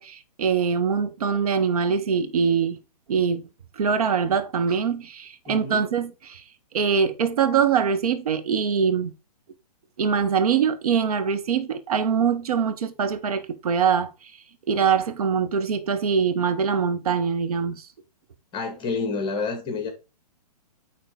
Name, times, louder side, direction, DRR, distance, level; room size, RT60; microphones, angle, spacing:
voice 1, 0.0-2.8 3.1-3.4 3.8-6.4 6.7-9.1 10.0-14.1 14.7-17.8, right 6 dB, 65° right, 1.5 m, -23 dB
voice 2, 5.5-5.9 18.5-19.9, left 4 dB, 20° left, 2.0 m, -29 dB
9.4 x 4.1 x 3.9 m
hypercardioid pair, 130°, 21 cm